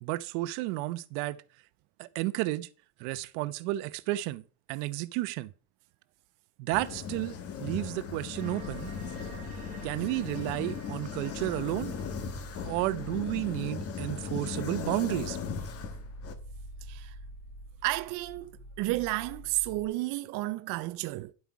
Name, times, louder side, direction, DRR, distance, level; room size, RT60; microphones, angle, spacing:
voice 1, 0.0-1.4 2.0-2.7 3.0-4.4 4.7-5.5 6.6-8.9 9.8-11.9 12.6-15.4, right 18 dB, 75° right, 0.9 m, -32 dB
sound 1, 6.7-16.3, left 6 dB, 30° left, 1.2 m, -38 dB
sound 2, 8.3-15.3, right 3 dB, 15° right, 3.0 m, -52 dB
sound 3, 8.6-19.9, right 1 dB, 10° left, 3.6 m, -47 dB
voice 2, 17.8-21.3, right 19 dB, 45° right, 0.5 m, -32 dB
11.0 x 7.8 x 4.6 m
cardioid pair, 170°, 45 cm